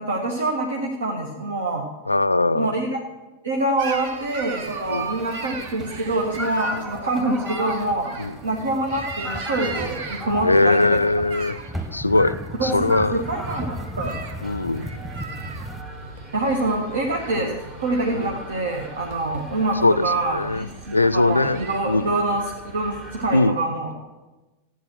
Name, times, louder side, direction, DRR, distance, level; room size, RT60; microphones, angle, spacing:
voice 1, 0.0-1.8 2.5-3.0 3.4-8.1 8.4-11.0 12.6-14.1 16.3-17.5 17.8-23.9, right 2 dB, 70° right, 1 dB, 1.6 m, -25 dB
voice 2, 2.1-2.8 4.9-5.1 6.7-6.9 8.2-8.4 10.4-11.6 11.9-13.2 14.4-14.9 17.4-17.6 18.1-18.4 19.8-20.7 20.9-21.6 21.9-22.1 23.3-23.6, left 2 dB, 85° left, 18 dB, 0.4 m, -21 dB
sound 1, 3.8-22.2, right 4 dB, 55° right, 1.4 m, -38 dB
sound 2, 4.6-15.8, left 1 dB, 10° right, 1.5 m, -35 dB
sound 3, 12.6-23.4, right 2 dB, 30° right, 2.8 m, -42 dB
14.5 x 9.2 x 6.3 m, 1.1 s
figure-of-eight pair, 90°, 0 cm